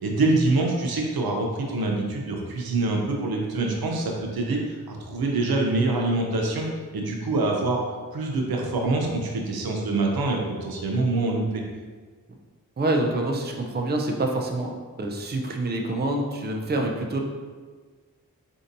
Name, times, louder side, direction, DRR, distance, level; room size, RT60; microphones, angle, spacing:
voice 1, 0.0-6.7 6.9-7.8 8.1-11.6, right 2 dB, 90° right, 0 dB, 0.6 m, -25 dB
voice 2, 12.8-14.7 15.0-17.2, right 2 dB, 30° right, 2 dB, 0.5 m, -26 dB
4.3 x 2.7 x 2.6 m, 1.5 s
cardioid pair, 55°, 36 cm